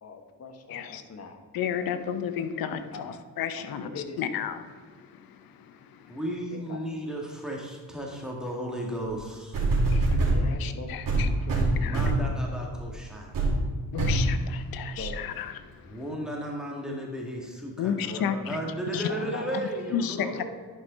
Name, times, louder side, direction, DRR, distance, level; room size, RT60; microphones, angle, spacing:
voice 1, 0.0-1.4 2.6-3.2 3.6-4.4 6.5-6.8 10.2-11.0 15.0-15.2 18.1-18.2 18.9-19.6 19.9-20.4, left 4 dB, 45° left, 5 dB, 1.3 m, -41 dB
voice 2, 0.7-1.0 1.5-6.2 9.9-11.5 11.8-12.1 13.9-16.0 17.8-18.6 18.9-19.1 19.9-20.4, left 8 dB, 75° left, 10 dB, 0.8 m, -33 dB
voice 3, 6.1-9.6 11.8-13.3 15.9-20.4, right 1 dB, ahead, -2 dB, 2.0 m, -34 dB
sound 1, 9.0-9.1 9.5-10.4 11.1-12.3 12.8-13.0 13.3-13.6 14.0-14.3 15.0-15.1, right 2 dB, 65° right, 2.5 m, -24 dB
11.0 x 5.4 x 4.1 m, 1.5 s
cardioid pair, 75°, 35 cm